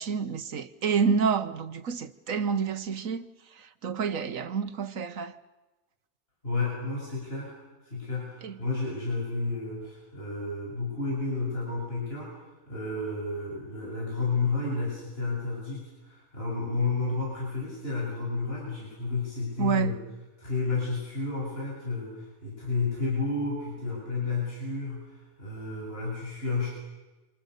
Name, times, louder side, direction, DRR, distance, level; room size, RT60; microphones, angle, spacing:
voice 1, 0.0-3.3 3.6-5.4 8.4-8.5 19.6-20.0, right 6 dB, 65° right, 1.6 m, -28 dB
voice 2, 6.4-7.5 7.8-20.0 20.4-26.7, left 3 dB, 40° left, 8.3 m, -31 dB
29.5 x 26.5 x 6.8 m
omnidirectional pair, 1.5 m